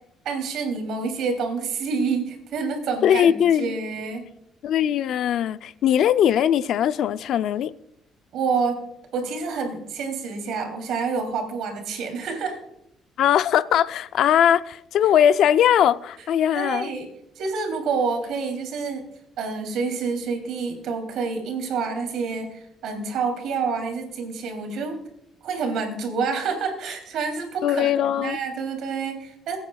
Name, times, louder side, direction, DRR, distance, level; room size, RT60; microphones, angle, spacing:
voice 1, 0.2-4.3 8.3-8.9 9.1-12.6 16.5-17.1 17.3-19.0 19.4-25.0 25.4-29.6, right 5 dB, 70° right, 3.0 m, -28 dB
voice 2, 3.0-3.8 4.6-7.7 13.2-16.9 27.6-28.4, left 10 dB, 65° left, 0.4 m, -20 dB
22.5 x 9.1 x 2.3 m
cardioid pair, 140°, 0 cm